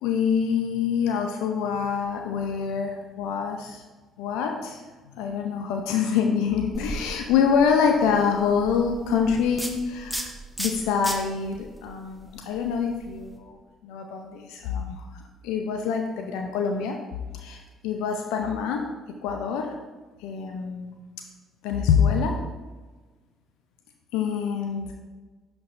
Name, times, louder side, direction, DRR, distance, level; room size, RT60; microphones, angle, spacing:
voice 1, 0.0-3.8 4.2-4.8 5.2-10.3 10.6-13.6 13.8-17.0 17.3-18.8 19.2-19.7 20.2-20.9 21.6-22.4 24.1-24.9, left 6 dB, 70° left, 3 dB, 0.5 m, -25 dB
sound 1, 6.7-13.4, right 1 dB, ahead, 1.0 m, -37 dB
11.0 x 4.6 x 2.6 m, 1.3 s
hypercardioid pair, 50°, 0 cm